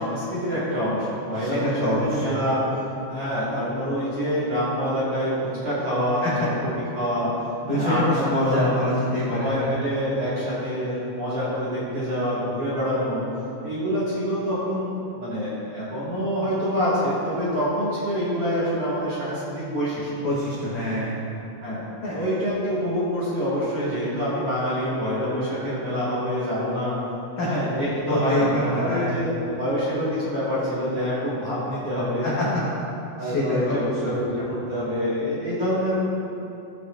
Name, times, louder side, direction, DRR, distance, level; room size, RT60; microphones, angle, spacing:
voice 1, 0.0-2.6 3.1-7.3 7.7-8.8 9.3-13.2 13.6-20.2 21.6-21.8 22.1-27.0 27.4-32.5 33.2-35.9, equal, 55° right, -11 dB, 1.6 m, -26 dB
voice 2, 1.3-2.4 6.2-6.5 7.6-9.8 20.2-21.2 22.0-22.3 27.4-27.6 28.1-29.2 32.2-32.6 33.2-34.2, left 1 dB, 70° left, -8 dB, 1.9 m, -26 dB
16.5 x 6.5 x 2.5 m, 2.8 s
omnidirectional pair, 5.8 m